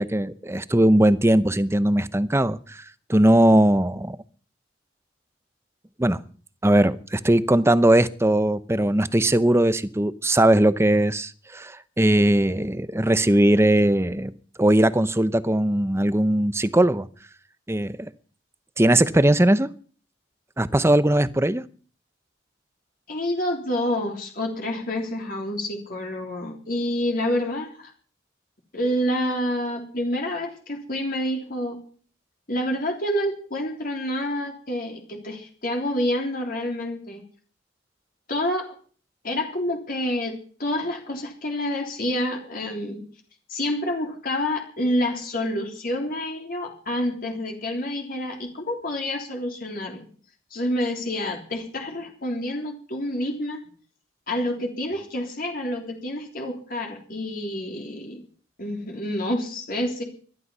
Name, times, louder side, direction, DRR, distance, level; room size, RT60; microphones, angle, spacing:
voice 1, 0.0-2.8 3.1-4.2 6.0-6.2 6.6-14.3 14.6-17.1 17.7-18.1 18.8-19.7 20.6-21.6, right 1 dB, 15° right, 0.7 m, -19 dB
voice 2, 23.1-27.9 28.7-31.8 32.5-37.2 38.3-38.7 39.2-43.0 43.5-50.1 50.5-53.6 54.3-58.2 58.6-60.0, left 1 dB, 50° left, 3.3 m, -28 dB
20.0 x 12.5 x 5.6 m
head